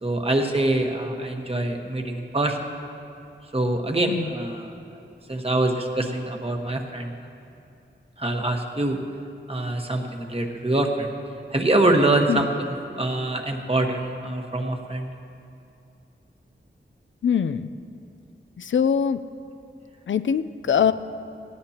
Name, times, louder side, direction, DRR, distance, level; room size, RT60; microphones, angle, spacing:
voice 1, 0.0-2.6 3.5-5.0 5.3-7.1 8.2-9.0 9.5-11.1 11.5-15.1, right 2 dB, 30° right, 3 dB, 1.3 m, -24 dB
voice 2, 17.2-17.7 18.6-19.2 20.1-20.9, left 7 dB, 75° left, 12 dB, 0.4 m, -22 dB
18.0 x 15.5 x 2.9 m, 2.6 s
wide cardioid pair, 80°, 20 cm